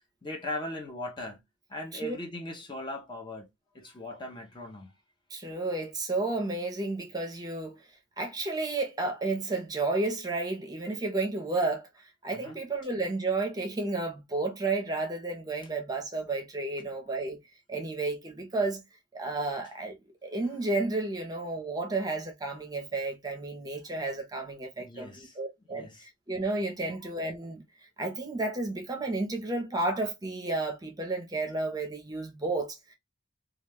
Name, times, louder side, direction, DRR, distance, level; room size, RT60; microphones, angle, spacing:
voice 1, 0.2-1.4 1.7-4.9 12.3-12.6 24.8-25.4 25.7-26.1 26.8-27.0, left 2 dB, 25° left, 0.5 m, -39 dB
voice 2, 5.3-7.8 8.2-17.4 17.7-18.8 19.1-27.6 28.0-32.9, right 2 dB, 20° right, 0.6 m, -32 dB
2.3 x 2.2 x 3.2 m
head